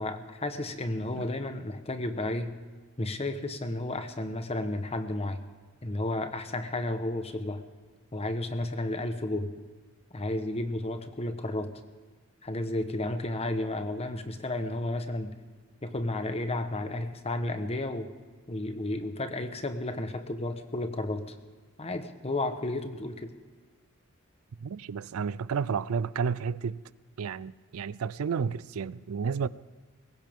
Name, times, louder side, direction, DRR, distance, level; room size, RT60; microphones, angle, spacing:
voice 1, 0.0-2.6 3.0-5.4 5.8-7.6 8.1-9.5 10.1-11.7 12.4-15.3 15.8-18.1 18.5-21.3 21.8-23.3, left 2 dB, 30° left, 1.1 m, -32 dB
voice 2, 24.6-26.8 27.2-29.5, right 6 dB, 85° right, 0.4 m, -31 dB
19.5 x 16.5 x 3.6 m
head